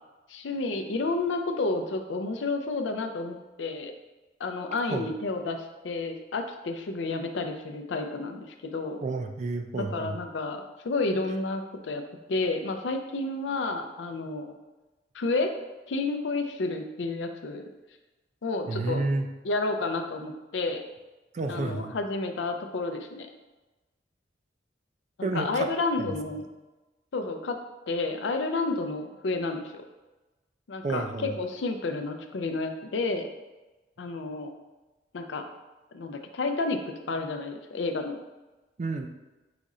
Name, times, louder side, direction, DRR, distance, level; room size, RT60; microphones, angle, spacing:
voice 1, 0.3-3.9 4.4-8.5 8.7-9.0 9.7-10.6 10.8-12.0 12.3-14.6 15.1-15.5 15.9-17.7 18.4-19.0 19.4-20.8 21.5-23.3 25.2-26.4 27.1-27.6 27.9-29.6 30.7-33.3 34.0-34.5 35.1-35.4 35.9-36.8 37.1-38.2, left 3 dB, 80° left, 6 dB, 0.5 m, -30 dB
voice 2, 9.0-10.2 18.7-19.3 21.3-22.0 25.2-25.7 26.0-26.1 30.8-31.4 38.8-39.1, right 3 dB, 40° right, 6 dB, 0.3 m, -30 dB
4.9 x 2.4 x 4.1 m, 1.1 s
head